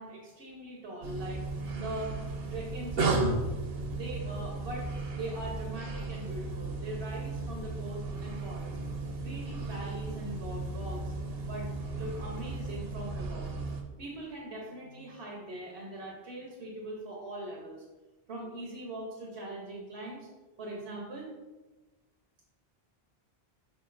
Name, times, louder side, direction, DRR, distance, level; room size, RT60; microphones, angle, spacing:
voice 1, 0.0-1.5 1.7-3.3 3.9-8.8 9.2-11.1 11.4-13.5 14.0-17.8 18.3-20.3 20.6-21.3, right 1 dB, 85° right, -2 dB, 1.3 m, -41 dB
sound 1, 1.0-13.8, right 3 dB, 70° right, 1.0 m, -35 dB
6.1 x 6.1 x 2.5 m, 1.2 s
omnidirectional pair, 1.1 m